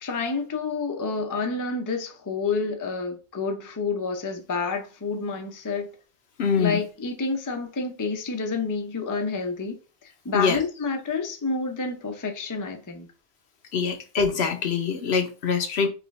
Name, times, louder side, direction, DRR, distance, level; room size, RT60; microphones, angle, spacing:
voice 1, 0.0-5.9 6.6-9.8 10.0-13.1, left 4 dB, 25° left, 0.5 m, -29 dB
voice 2, 6.4-6.8 10.3-10.6 13.7-15.9, left 5 dB, 70° left, 1.0 m, -24 dB
4.9 x 2.5 x 3.2 m
omnidirectional pair, 1.1 m